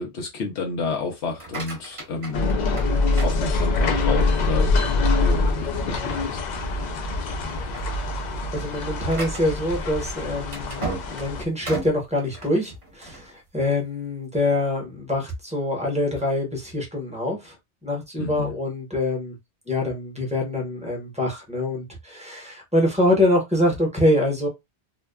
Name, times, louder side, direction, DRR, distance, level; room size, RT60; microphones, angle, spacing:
voice 1, 0.0-2.5 3.2-4.7 5.0-6.4 18.2-18.5, left 4 dB, 80° left, 0.9 m, -30 dB
sound 1, 1.2-4.0 4.5-5.0 5.4-5.5 6.0-6.1 6.8-7.1 7.4-13.3, right 2 dB, 30° right, 1.0 m, -36 dB
sound 2, 2.3-11.4, left 3 dB, 55° left, 0.5 m, -24 dB
voice 2, 8.5-17.5 17.8-19.4 19.7-24.5, left 1 dB, 5° right, 0.8 m, -25 dB
2.6 x 2.2 x 2.2 m
omnidirectional pair, 1.1 m